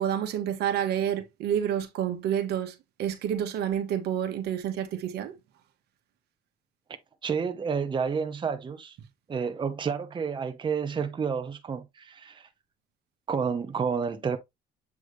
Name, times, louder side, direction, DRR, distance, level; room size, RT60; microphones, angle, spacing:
voice 1, 0.0-5.3, right 9 dB, 75° right, 1.4 m, -29 dB
voice 2, 7.2-9.0 9.3-12.5 13.3-14.4, right 6 dB, 30° right, 0.9 m, -30 dB
7.9 x 3.6 x 3.3 m
cardioid pair, 110°, 17 cm